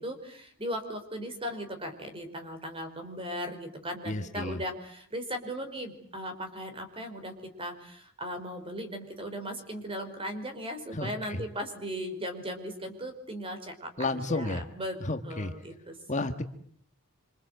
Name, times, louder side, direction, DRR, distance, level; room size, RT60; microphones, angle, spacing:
voice 1, 0.0-15.0 15.2-16.0, equal, 25° right, 7 dB, 5.0 m, -37 dB
voice 2, 4.0-4.6 10.9-11.4 14.0-14.6 15.0-15.5 16.1-16.4, left 2 dB, 35° left, 6 dB, 1.5 m, -32 dB
27.0 x 26.5 x 8.1 m, 0.63 s
head